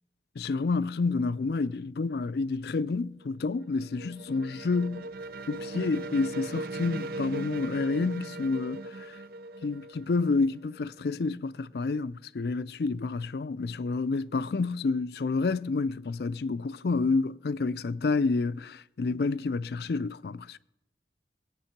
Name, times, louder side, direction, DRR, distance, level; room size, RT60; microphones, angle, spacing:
voice 1, 0.4-5.1 5.5-9.1 9.6-20.6, left 3 dB, 60° left, 0.4 m, -29 dB
sound 1, 3.2-11.0, right 2 dB, 55° right, 0.5 m, -39 dB
18.5 x 8.9 x 5.9 m
head